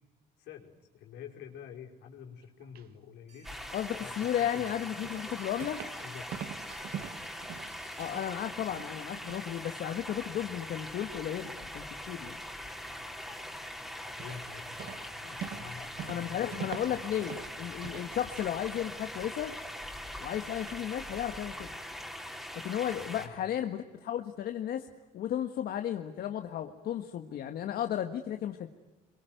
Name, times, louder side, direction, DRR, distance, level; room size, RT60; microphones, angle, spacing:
voice 1, 0.4-3.5 3.9-4.8 6.0-6.3 14.2-17.1 23.1-23.3, left 8 dB, 85° left, 1 dB, 5.1 m, -48 dB
sound 1, 2.4-2.9 4.2-4.4 5.0-6.0 6.3-8.4 8.7-9.5 9.8-10.5 10.9-11.0 11.4-11.7 12.7-12.8 13.3-13.7 14.2-14.5 14.8-17.6 17.8-18.7 19.0-19.7 20.1-20.2 20.7-20.9, right 9 dB, 65° right, 2.0 m, -45 dB
sound 2, 3.3-8.3, right 3 dB, 45° right, 4.4 m, -58 dB
sound 3, 3.4-23.3, left 1 dB, ahead, 4.0 m, -42 dB
voice 2, 3.7-5.8 8.0-12.4 16.1-19.5 20.2-21.7 22.6-24.9 25.1-28.7, left 10 dB, 65° left, 6 dB, 1.7 m, -34 dB
26.5 x 23.5 x 9.3 m, 1.1 s
cardioid pair, 110°, 17 cm